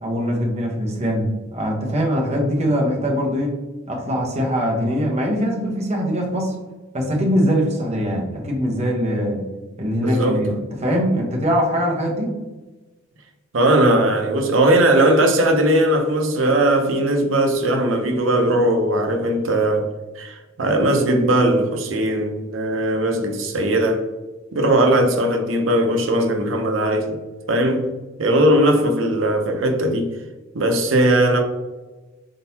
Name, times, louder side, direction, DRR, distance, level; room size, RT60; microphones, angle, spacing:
voice 1, 0.0-3.6 3.9-6.5 6.9-9.5 9.8-10.5 10.8-12.3, equal, 35° right, 1.0 m, -22 dB
voice 2, 10.0-10.4 13.5-19.9 20.2-24.0 24.5-27.2 27.5-27.9 28.2-30.1 30.5-31.4, right 1 dB, 80° right, 0.7 m, -18 dB
4.4 x 3.8 x 2.8 m
head